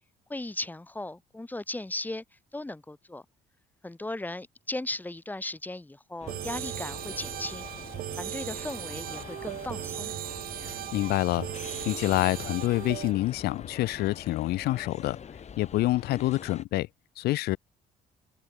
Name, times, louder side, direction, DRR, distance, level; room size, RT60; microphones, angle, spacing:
voice 1, 0.3-2.2 2.5-3.2 3.8-7.7 8.1-10.1, left 2 dB, 10° left, 3.0 m, -37 dB
sound 1, 6.2-16.7, left 7 dB, 40° left, 7.6 m, -44 dB
sound 2, 6.3-13.1, right 13 dB, 60° right, 0.8 m, -37 dB
voice 2, 10.6-11.5 11.8-15.2 15.6-16.9 17.2-17.6, left 17 dB, 70° left, 0.6 m, -27 dB
cardioid pair, 110°, 17 cm